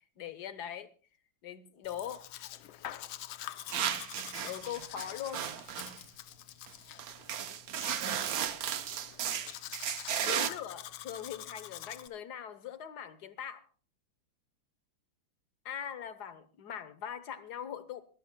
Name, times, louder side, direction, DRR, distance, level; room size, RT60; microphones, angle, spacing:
voice 1, 0.2-0.9 1.4-2.2 4.4-5.5 10.2-13.7 15.6-18.0, left 9 dB, 60° left, 1.5 m, -41 dB
Domestic sounds home sounds, 1.8-12.1, left 12 dB, 80° left, 1.6 m, -46 dB
sound 1, 3.7-6.0 6.7-6.8 7.0-10.5, right 9 dB, 55° right, 1.1 m, -34 dB
23.0 x 13.0 x 2.2 m
omnidirectional pair, 2.2 m